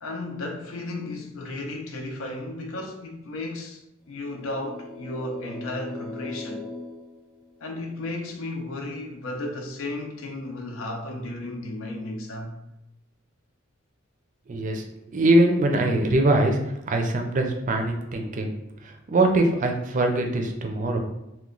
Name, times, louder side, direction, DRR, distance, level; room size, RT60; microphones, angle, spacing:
voice 1, 0.0-6.7 7.6-12.6, left 2 dB, 80° left, 0.6 m, -34 dB
sound 1, 4.1-8.0, left 3 dB, 20° left, 0.5 m, -39 dB
voice 2, 14.5-16.6 16.9-18.5 18.8-21.0, right 1 dB, 40° right, 0.4 m, -22 dB
2.9 x 2.2 x 3.7 m
head